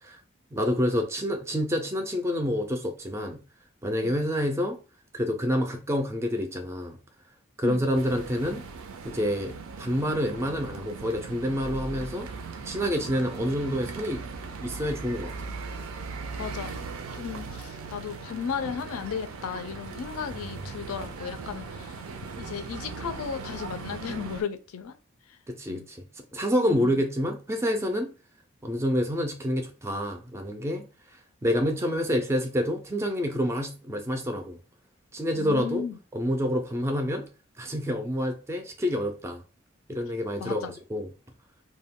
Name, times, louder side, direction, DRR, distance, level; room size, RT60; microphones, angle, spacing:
voice 1, 0.5-3.4 3.8-4.8 5.1-7.0 7.6-8.6 9.0-12.3 12.6-14.2 14.6-15.3 25.5-28.1 28.6-30.9 31.4-34.6 35.1-35.8 36.1-37.3 37.6-39.4 39.9-41.1, equal, 15° right, 0.3 m, -28 dB
sound 1, 7.9-24.4, right 4 dB, 80° right, 0.4 m, -39 dB
voice 2, 16.4-16.8 17.1-22.0 22.4-24.9 25.3-25.4 25.7-25.9 26.7-27.0 35.4-36.0 40.4-40.7, left 7 dB, 80° left, 0.4 m, -35 dB
2.2 x 2.1 x 3.5 m
head